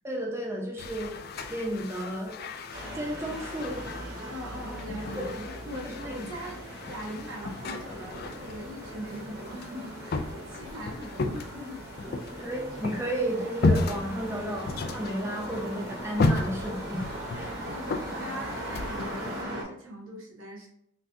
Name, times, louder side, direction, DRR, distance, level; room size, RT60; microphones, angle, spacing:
voice 1, 0.0-1.2 1.5-2.3 2.9-3.9 5.9-6.1 6.4-6.5 12.4-17.0 17.3-17.7, right 1 dB, 15° right, -2 dB, 0.7 m, -33 dB
sound 1, 0.8-19.4, left 3 dB, 50° left, 0.3 m, -34 dB
sound 2, 2.7-19.6, right 1 dB, 65° right, 1.3 m, -40 dB
voice 2, 4.3-12.4 17.3-20.7, equal, 85° right, -2 dB, 1.3 m, -41 dB
5.7 x 2.3 x 2.6 m, 0.72 s
head